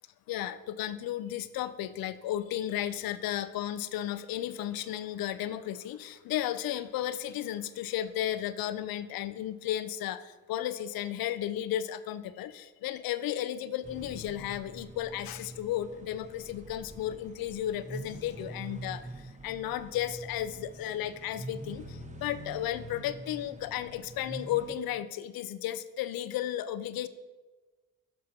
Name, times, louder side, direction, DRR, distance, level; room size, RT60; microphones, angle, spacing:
voice 1, 0.3-10.2 10.5-19.0 19.4-21.8 22.2-27.1, left 12 dB, 65° left, 14 dB, 0.5 m, -34 dB
sound 1, 13.8-24.8, right 1 dB, 20° right, 1.1 m, -45 dB
6.8 x 4.3 x 5.2 m, 1.2 s
hypercardioid pair, 40°, 38 cm